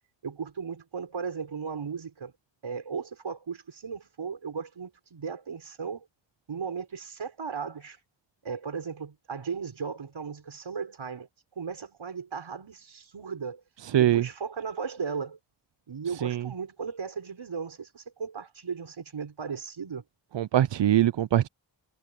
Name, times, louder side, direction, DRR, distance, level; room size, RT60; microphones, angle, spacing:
voice 1, 0.2-2.3 2.6-6.1 6.5-8.0 8.4-11.3 11.6-13.6 13.9-15.4 15.9-20.0, right 6 dB, 85° right, 5.5 m, -36 dB
voice 2, 13.9-14.2 16.2-16.4 20.3-21.5, right 12 dB, 70° right, 0.6 m, -22 dB
wide cardioid pair, 70°, 46 cm